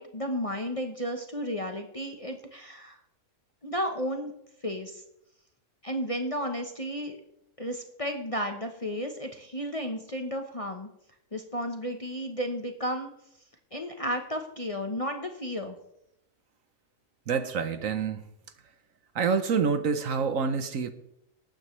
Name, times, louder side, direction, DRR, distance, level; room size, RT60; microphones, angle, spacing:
voice 1, 0.0-3.0 3.6-4.3 4.6-5.0 5.8-7.2 7.6-10.9 11.3-13.1 13.7-15.8, equal, 25° left, 0.9 m, -33 dB
voice 2, 17.3-18.2 19.1-20.9, right 5 dB, 60° right, 1.2 m, -27 dB
19.5 x 9.1 x 3.2 m
omnidirectional pair, 1.6 m